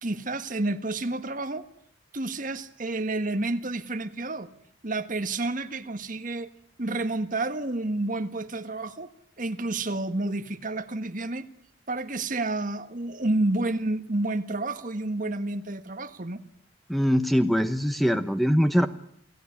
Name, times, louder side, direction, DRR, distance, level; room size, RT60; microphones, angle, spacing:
voice 1, 0.0-1.7 2.1-4.5 4.8-6.5 6.8-9.1 9.4-11.5 11.9-16.4, right 2 dB, 45° right, 9 dB, 1.6 m, -30 dB
voice 2, 16.9-18.9, equal, ahead, 9 dB, 1.0 m, -22 dB
29.5 x 17.5 x 9.8 m, 0.67 s
head